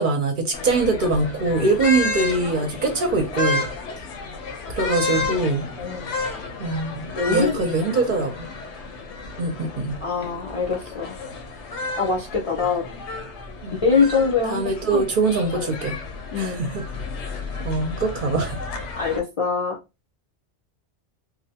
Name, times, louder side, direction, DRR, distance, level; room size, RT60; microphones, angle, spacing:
voice 1, 0.0-3.6 4.7-5.7 6.6-8.5 9.4-10.0 13.6-13.7 14.5-16.0 16.3-16.8 17.6-18.6, right 3 dB, 55° right, 0.6 m, -23 dB
sound 1, 0.5-19.2, left 3 dB, 85° left, 0.9 m, -32 dB
voice 2, 5.8-6.8 7.2-7.6 8.1-8.3 10.0-11.2 12.0-12.8 13.8-15.0 16.3-16.7 18.9-19.8, left 5 dB, 50° left, 0.4 m, -24 dB
2.5 x 2.0 x 2.7 m
omnidirectional pair, 1.2 m